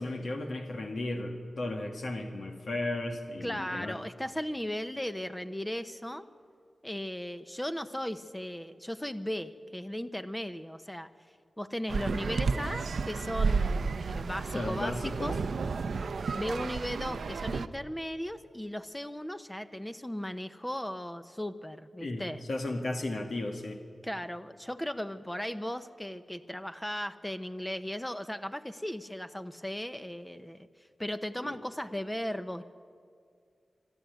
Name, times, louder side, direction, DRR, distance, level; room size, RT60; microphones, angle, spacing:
voice 1, 0.0-4.0 14.5-15.4 22.0-23.8 31.4-31.6, left 2 dB, 70° left, 3 dB, 1.9 m, -35 dB
voice 2, 3.4-6.3 6.8-11.1 11.6-14.9 15.2-15.4 16.3-22.4 24.0-30.7 31.0-32.6, equal, 10° left, 9 dB, 0.9 m, -36 dB
sound 1, 11.9-17.7, right 4 dB, 80° right, 0.7 m, -32 dB
24.5 x 12.5 x 9.3 m, 2.2 s
cardioid pair, 65°, 0 cm